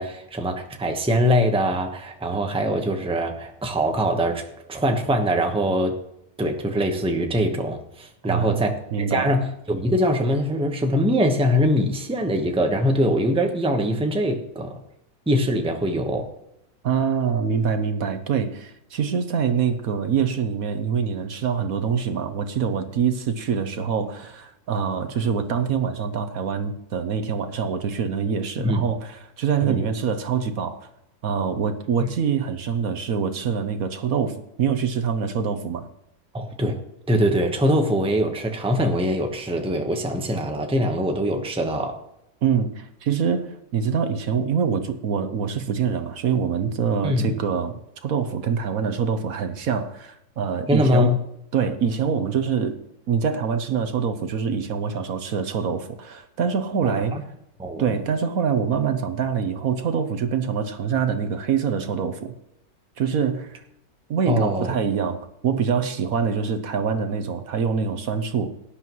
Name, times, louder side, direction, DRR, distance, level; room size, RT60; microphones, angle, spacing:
voice 1, 0.0-6.0 6.4-14.8 15.3-16.3 28.6-28.8 29.6-29.9 32.0-32.1 36.3-36.8 37.1-42.0 47.0-47.4 50.7-51.2 56.8-57.2 57.6-58.0 64.3-64.7, equal, 5° right, 0.9 m, -23 dB
voice 2, 8.3-9.3 16.8-30.9 31.2-35.8 42.4-51.1 51.5-52.8 53.1-57.2 57.8-62.3 63.0-63.6 64.1-68.5, right 6 dB, 65° right, 1.3 m, -25 dB
17.5 x 10.0 x 3.1 m
omnidirectional pair, 1.7 m